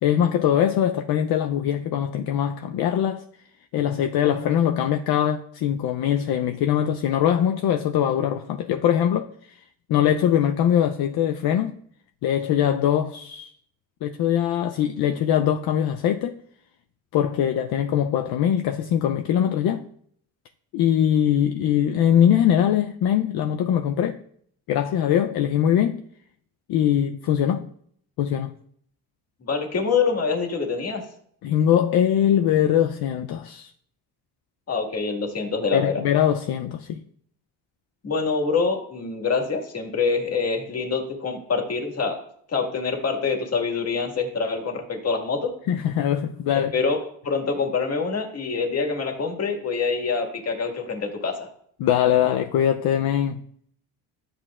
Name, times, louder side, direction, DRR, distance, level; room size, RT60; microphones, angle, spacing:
voice 1, 0.0-3.2 3.7-9.6 9.9-11.7 12.2-13.5 14.0-16.4 17.1-19.8 20.7-24.2 24.7-26.0 26.7-27.7 28.2-28.5 31.4-33.7 35.7-37.0 45.7-46.7 51.8-53.4, left 10 dB, 65° left, 0.6 m, -22 dB
voice 2, 29.4-31.0 34.7-36.0 38.0-42.2 42.5-45.5 46.6-51.5, left 4 dB, 35° left, 1.8 m, -25 dB
13.0 x 7.7 x 2.4 m
cardioid pair, 105°, 41 cm